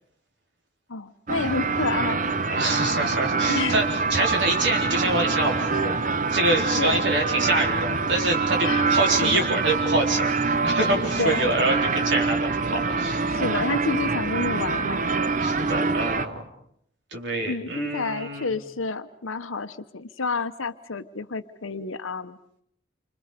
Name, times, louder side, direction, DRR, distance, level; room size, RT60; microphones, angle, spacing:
voice 1, 0.9-2.3 3.5-3.9 6.8-7.0 8.6-8.9 9.2-9.4 11.2-11.5 13.3-15.0 17.5-22.4, left 4 dB, 90° left, 10 dB, 1.1 m, -29 dB
sound 1, 1.3-16.3, right 4 dB, 40° right, 0.9 m, -25 dB
voice 2, 2.5-6.0 6.3-13.2 15.4-16.4 17.1-18.6, right 2 dB, 60° right, 2 dB, 4.1 m, -26 dB
29.5 x 26.5 x 5.2 m, 0.68 s
head